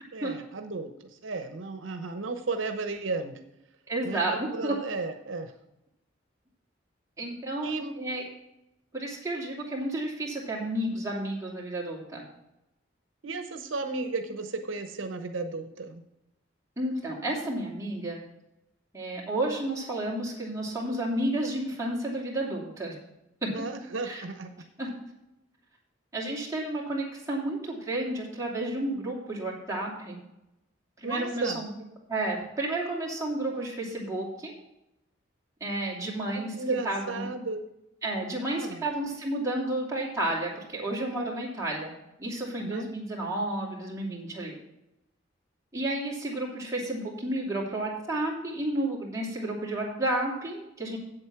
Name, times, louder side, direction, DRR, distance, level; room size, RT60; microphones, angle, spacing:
voice 1, 0.1-3.4 4.0-5.5 7.6-7.9 13.2-16.0 23.5-24.5 31.0-31.6 36.5-37.6 38.4-38.8 42.6-42.9, right 3 dB, 85° right, 7 dB, 0.9 m, -34 dB
voice 2, 3.9-4.8 7.2-8.2 8.9-12.2 16.8-18.2 18.9-23.0 23.4-23.5 24.0-24.2 24.8-24.9 26.1-30.2 31.0-31.7 32.1-34.5 35.6-36.5 36.8-37.3 38.0-41.9 42.2-44.5 45.7-51.0, right 1 dB, 15° right, -4 dB, 2.8 m, -31 dB
8.2 x 7.8 x 6.0 m, 0.88 s
head